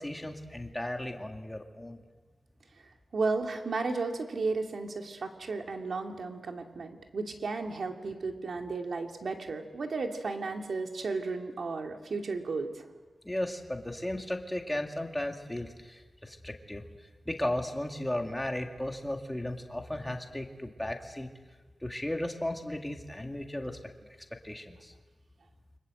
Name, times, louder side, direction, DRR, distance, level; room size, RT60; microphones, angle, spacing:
voice 1, 0.0-2.0 13.2-16.8 17.3-21.3 21.8-23.8 24.4-24.9, left 1 dB, 10° left, 3 dB, 2.1 m, -35 dB
voice 2, 3.1-12.9, right 3 dB, 60° right, 3 dB, 2.6 m, -34 dB
28.5 x 25.0 x 7.8 m, 1.3 s
wide cardioid pair, 180°, 0 cm